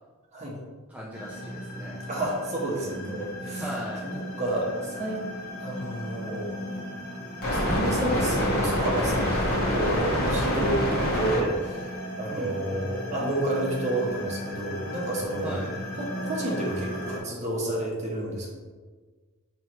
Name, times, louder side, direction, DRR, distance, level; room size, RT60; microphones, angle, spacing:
voice 1, 0.9-2.0 3.6-4.2 12.3-12.5 15.4-15.7, equal, 5° right, -6 dB, 0.5 m, -37 dB
sound 1, 1.1-17.2, equal, 45° left, 1.4 m, -30 dB
voice 2, 2.1-3.6 4.0-5.2 5.6-6.6 7.5-11.9 12.2-15.6 16.0-18.5, right 1 dB, 30° right, -3 dB, 1.0 m, -30 dB
5.8 x 3.1 x 3.0 m, 1.4 s
head